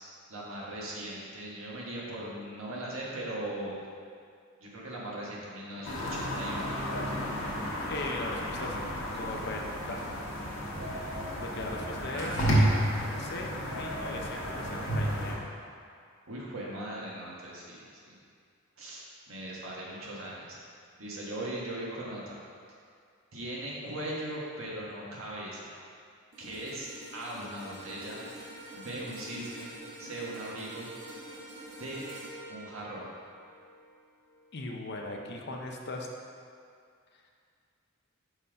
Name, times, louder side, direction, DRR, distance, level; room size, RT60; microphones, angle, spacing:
voice 1, 0.3-3.7 4.6-6.7 12.1-12.8 16.3-18.2 18.8-20.6 21.0-22.4 23.3-25.7 26.4-28.2 28.7-29.7 30.0-30.9 31.8-32.0 32.5-33.1, right 1 dB, 75° right, -5 dB, 1.5 m, -39 dB
sound 1, 5.8-15.3, equal, 85° left, 1.5 m, -31 dB
voice 2, 7.9-9.6 9.9-10.0 11.4-12.4 13.2-15.4 34.5-36.1, left 2 dB, 55° left, 1 dB, 0.7 m, -39 dB
sound 2, 26.3-34.7 35.1-35.3, right 1 dB, 55° right, 1.2 m, -47 dB
5.6 x 4.6 x 5.1 m, 2.3 s
head